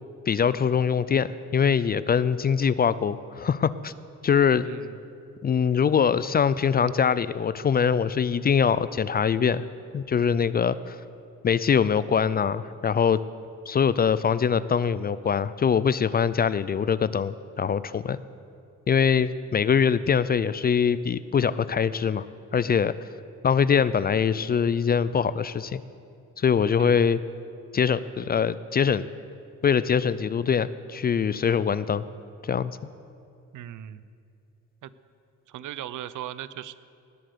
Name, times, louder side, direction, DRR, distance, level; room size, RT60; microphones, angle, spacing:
voice 1, 0.3-3.9 4.2-4.7 5.4-9.7 9.9-11.0 11.4-13.2 13.7-18.2 18.9-22.3 22.5-22.9 23.4-25.8 26.4-27.2 27.7-29.1 29.6-32.0 32.4-32.7, left 7 dB, 30° left, 16 dB, 0.4 m, -23 dB
voice 2, 33.5-34.0 34.8-34.9 35.5-36.8, right 12 dB, 70° right, 16 dB, 0.6 m, -38 dB
19.0 x 7.7 x 6.7 m, 2.5 s
cardioid pair, 100°, 31 cm